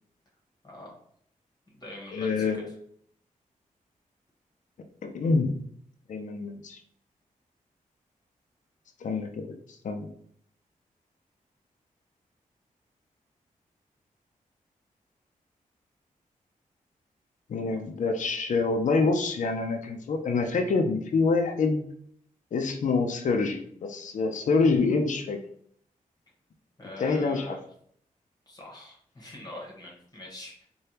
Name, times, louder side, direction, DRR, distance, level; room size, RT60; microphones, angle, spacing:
voice 1, 0.6-1.0 1.7-2.7 26.8-27.6 28.5-30.7, left 2 dB, 25° left, -2 dB, 1.1 m, -44 dB
voice 2, 2.1-2.7 5.0-5.5 6.1-6.8 9.0-9.6 9.8-10.1 17.5-21.8 22.5-25.4 27.0-27.6, left 4 dB, 60° left, 5 dB, 0.4 m, -26 dB
3.3 x 2.2 x 2.8 m, 0.64 s
cardioid pair, 65°, 15 cm